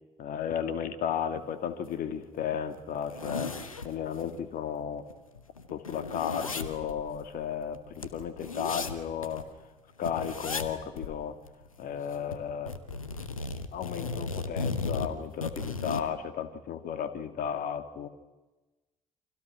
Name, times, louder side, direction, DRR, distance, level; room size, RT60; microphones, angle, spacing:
voice 1, 0.2-3.5 3.8-5.0 5.7-9.5 10.0-11.4 11.8-12.7 13.7-18.1, left 8 dB, 60° left, 9 dB, 2.3 m, -34 dB
sound 1, 1.8-1.9 2.3-2.4 2.8-4.4 4.8-4.9 5.1-9.5 10.0-10.7 11.0-11.1 11.5-12.4 12.7-16.1, left 4 dB, 85° left, 1.2 m, -36 dB
29.5 x 26.5 x 6.3 m, 1.1 s
figure-of-eight pair, 45°, 17 cm